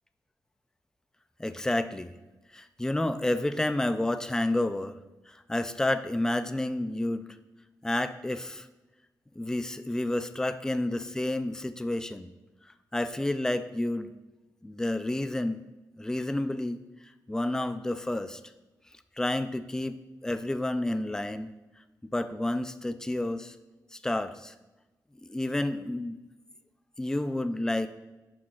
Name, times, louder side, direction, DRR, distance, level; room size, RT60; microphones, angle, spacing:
voice 1, 1.4-2.1 2.5-5.0 5.3-7.2 7.8-8.7 9.4-12.3 12.9-14.1 14.6-15.6 16.0-16.8 17.3-18.4 19.2-20.0 20.2-21.5 22.0-23.5 23.9-24.5 25.2-26.2 27.0-27.9, left 1 dB, 10° left, 10 dB, 0.4 m, -30 dB
10.5 x 6.1 x 2.4 m, 1.1 s
wide cardioid pair, 110°, 7 cm